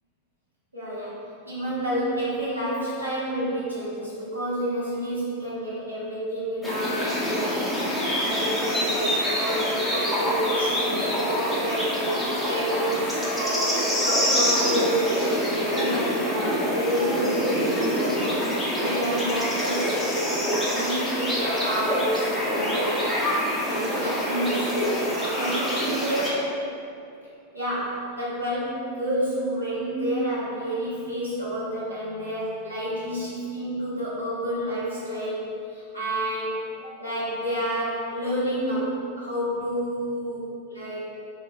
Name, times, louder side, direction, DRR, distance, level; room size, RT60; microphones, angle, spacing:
voice 1, 0.7-1.2 1.5-20.3 20.7-23.1 23.7-26.5 27.5-35.4 35.7-40.4 40.7-41.0, equal, 90° left, -10 dB, 0.8 m, -29 dB
sound 1, 6.6-26.3, equal, 5° left, 0.5 m, -26 dB
2.8 x 2.1 x 2.4 m, 2.5 s
figure-of-eight pair, 90°, 0 cm